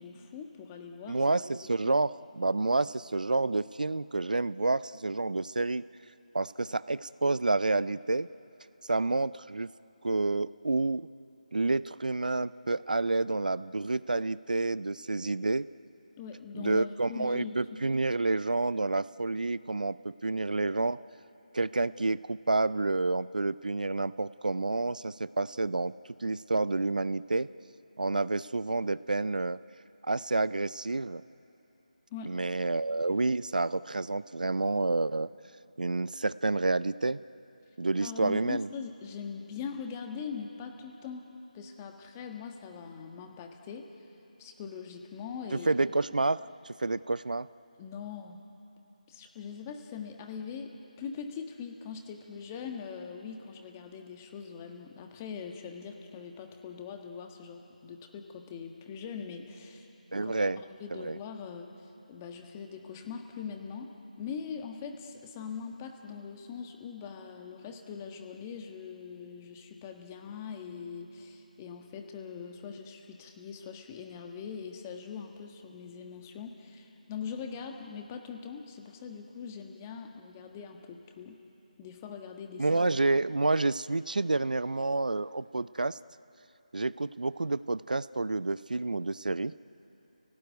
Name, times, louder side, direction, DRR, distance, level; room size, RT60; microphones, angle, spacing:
voice 1, 0.0-1.2 16.2-17.6 32.1-32.3 38.0-41.3 41.5-43.9 44.4-45.7 47.8-48.4 49.1-59.9 60.2-61.7 62.1-81.4 81.8-82.7, left 6 dB, 20° left, 4 dB, 1.5 m, -42 dB
voice 2, 1.1-5.8 6.3-8.3 8.9-9.7 10.0-11.1 11.5-15.7 16.5-21.0 21.5-25.9 26.2-27.5 28.0-29.6 30.1-31.2 32.3-35.3 35.8-37.2 37.8-38.7 45.5-46.4 46.8-47.5 60.1-60.6 60.9-61.2 82.6-86.0 86.7-89.5, right 2 dB, 80° right, 18 dB, 0.5 m, -29 dB
29.0 x 18.0 x 9.4 m, 3.0 s
figure-of-eight pair, 160°, 4 cm